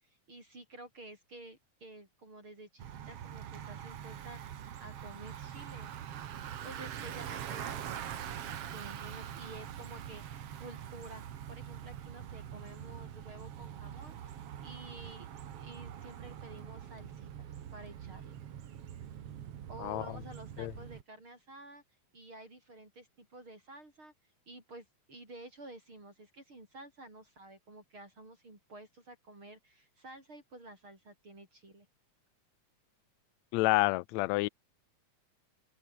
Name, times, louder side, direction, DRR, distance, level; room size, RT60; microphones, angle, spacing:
voice 1, 0.0-5.9 6.6-8.1 8.4-18.4 19.7-21.8 22.1-24.1 24.5-31.9, right 2 dB, 40° right, 7.3 m, -51 dB
Bicycle, 2.8-21.0, right 10 dB, 55° right, 2.2 m, -44 dB
voice 2, 33.5-34.5, left 22 dB, 80° left, 1.7 m, -28 dB
open air
omnidirectional pair, 3.6 m